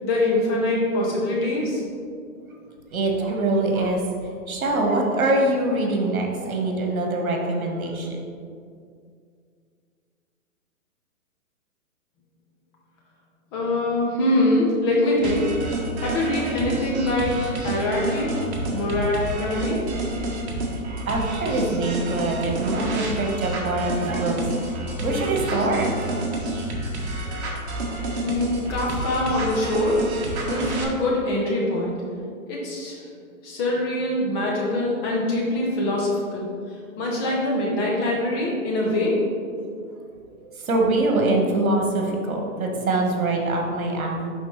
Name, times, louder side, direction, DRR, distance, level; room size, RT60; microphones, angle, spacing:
voice 1, 0.0-1.8 13.5-15.5 16.0-18.3 18.7-19.8 28.2-30.1 30.5-32.0 32.5-33.1 33.4-39.2, left 1 dB, 15° left, -3 dB, 0.7 m, -24 dB
voice 2, 2.9-4.0 4.5-8.2 20.6-20.7 21.1-25.9 39.9-40.0 40.4-44.3, right 2 dB, 75° right, 1 dB, 1.5 m, -24 dB
sound 1, 15.2-30.8, right 2 dB, 50° right, 1.5 m, -29 dB
11.0 x 3.9 x 3.3 m, 2.2 s
hypercardioid pair, 150°, 42 cm